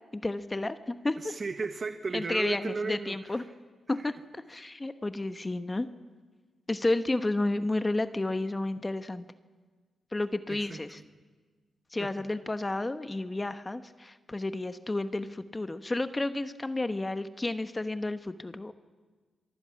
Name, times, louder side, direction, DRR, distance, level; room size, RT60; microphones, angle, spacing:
voice 1, 0.1-1.3 2.1-3.4 3.9-5.9 6.7-9.3 10.1-11.0 11.9-18.7, left 2 dB, 25° left, 10 dB, 1.1 m, -31 dB
voice 2, 1.2-3.4 4.0-4.1 10.5-10.8 12.0-12.1, right 4 dB, 45° right, 7 dB, 1.4 m, -35 dB
29.0 x 23.5 x 6.0 m, 1.4 s
supercardioid pair, 45°, 0 cm